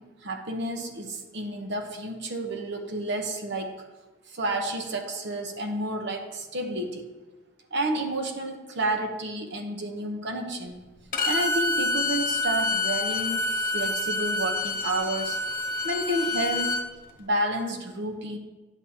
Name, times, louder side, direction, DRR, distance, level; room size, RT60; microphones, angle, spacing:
voice 1, 0.0-3.8 4.3-7.1 7.7-10.8 11.2-15.4 15.8-16.8 17.2-18.4, right 1 dB, 65° right, 4 dB, 1.0 m, -30 dB
Bowed string instrument, 11.1-16.8, left 2 dB, 45° left, 1.0 m, -27 dB
10.0 x 7.9 x 2.9 m, 1.2 s
head